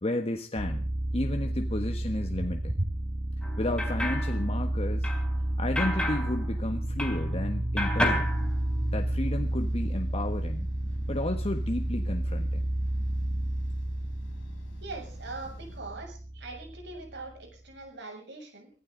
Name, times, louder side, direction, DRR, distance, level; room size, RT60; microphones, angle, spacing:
voice 1, 0.0-2.8 3.6-5.1 5.6-8.3 8.9-10.7 11.1-12.7, left 1 dB, 30° left, 5 dB, 1.3 m, -32 dB
sound 1, 0.6-17.2, right 1 dB, 30° right, 1.1 m, -31 dB
sound 2, 3.4-7.4 7.8-9.3, left 1 dB, 5° left, 3.9 m, -33 dB
sound 3, 8.1-15.8, equal, 75° left, 7.2 m, -51 dB
voice 2, 14.8-18.7, right 3 dB, 65° right, 3 dB, 7.3 m, -42 dB
23.5 x 15.0 x 3.9 m, 0.37 s
head